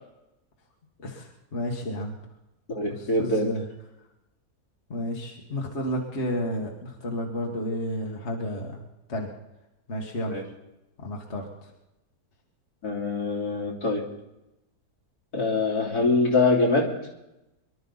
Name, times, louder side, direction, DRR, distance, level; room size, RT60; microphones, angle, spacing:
voice 1, 1.0-2.1 2.8-3.7 4.9-8.8 9.1-9.3 9.9-10.4 11.0-11.5, equal, 45° left, 0 dB, 2.1 m, -31 dB
voice 2, 2.7-3.5 10.3-10.4 12.8-14.0 15.3-17.0, left 3 dB, 70° left, -1 dB, 3.5 m, -24 dB
24.0 x 12.5 x 4.0 m, 0.92 s
omnidirectional pair, 1.7 m